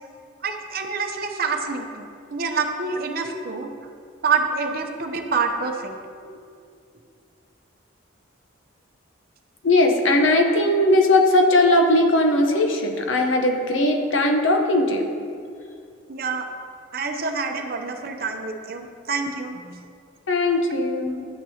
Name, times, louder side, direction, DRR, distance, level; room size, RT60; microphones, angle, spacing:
voice 1, 0.4-3.7 4.2-6.0 16.1-16.4 16.9-19.8, right 4 dB, 50° right, 4 dB, 0.7 m, -27 dB
voice 2, 9.6-15.1 20.3-21.3, left 1 dB, 75° left, 4 dB, 0.9 m, -19 dB
10.5 x 9.0 x 2.8 m, 2.3 s
head